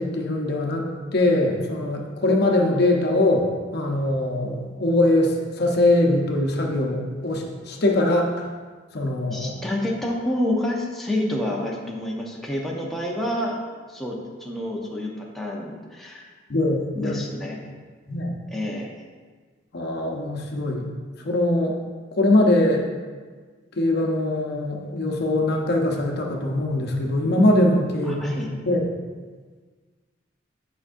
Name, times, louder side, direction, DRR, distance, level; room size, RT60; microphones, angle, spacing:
voice 1, 0.0-8.3 8.9-9.6 16.5-17.1 18.1-18.4 19.7-20.9 21.2-21.8 22.2-22.8 23.8-28.4 28.7-28.9, left 1 dB, 55° left, 1 dB, 0.8 m, -22 dB
voice 2, 9.3-13.6 13.9-16.3 16.9-17.6 18.5-18.9 28.0-28.5, left 1 dB, ahead, -3 dB, 0.7 m, -28 dB
8.6 x 5.4 x 2.6 m, 1.5 s
head